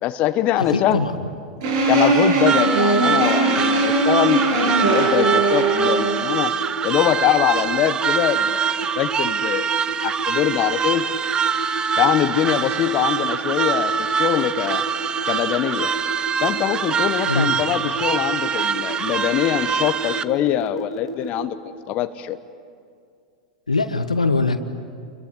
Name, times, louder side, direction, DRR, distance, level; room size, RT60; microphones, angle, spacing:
voice 1, 0.0-1.0 1.9-6.5 6.8-9.7 10.0-11.1 12.0-14.8 15.3-16.0 16.4-21.6 21.9-22.4, left 12 dB, 40° left, 10 dB, 1.1 m, -23 dB
voice 2, 0.7-1.1 17.3-17.6 23.7-24.6, left 3 dB, 90° left, 8 dB, 1.4 m, -21 dB
sound 1, 1.6-6.2, right 3 dB, 60° right, 8.0 m, -20 dB
sound 2, 2.5-20.2, right 7 dB, 25° right, 0.9 m, -24 dB
sound 3, 3.0-21.5, right 3 dB, 85° right, 3.6 m, -32 dB
29.5 x 22.0 x 8.6 m, 2.3 s
figure-of-eight pair, 95°, 4 cm